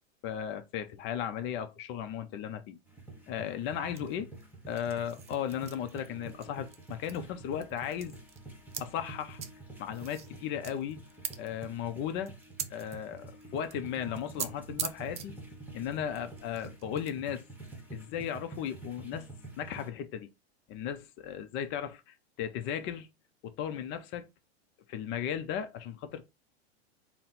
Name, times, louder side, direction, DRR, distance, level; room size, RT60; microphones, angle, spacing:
voice 1, 0.2-2.8 3.3-4.3 4.7-8.2 8.8-9.4 9.8-11.0 11.4-12.3 12.7-15.3 15.7-17.4 17.9-19.3 19.6-20.3 20.7-23.1 23.4-24.3 24.9-26.2, left 9 dB, 35° left, 0.5 m, -36 dB
sound 1, 2.9-19.9, right 3 dB, 5° right, 1.0 m, -48 dB
sound 2, 3.9-7.3 7.5-8.8 9.3-9.5 9.9-13.9 14.2-14.5 14.8-15.3 15.9-17.1 17.6-17.8, right 8 dB, 20° right, 0.4 m, -42 dB
4.1 x 2.0 x 4.1 m
supercardioid pair, 130°, 33 cm